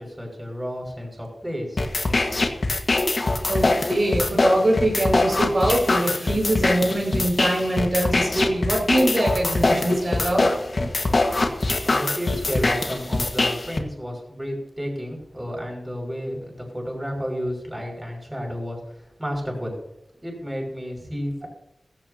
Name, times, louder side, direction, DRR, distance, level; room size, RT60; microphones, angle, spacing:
voice 1, 0.0-1.8 11.8-19.7 20.2-21.5, equal, 15° right, 0 dB, 6.3 m, -31 dB
sound 1, 1.8-13.8, left 2 dB, 55° left, 1.6 m, -23 dB
voice 2, 3.5-10.5, right 1 dB, 60° right, -1 dB, 5.8 m, -23 dB
16.0 x 15.5 x 2.9 m, 0.81 s
cardioid pair, 45°, 0 cm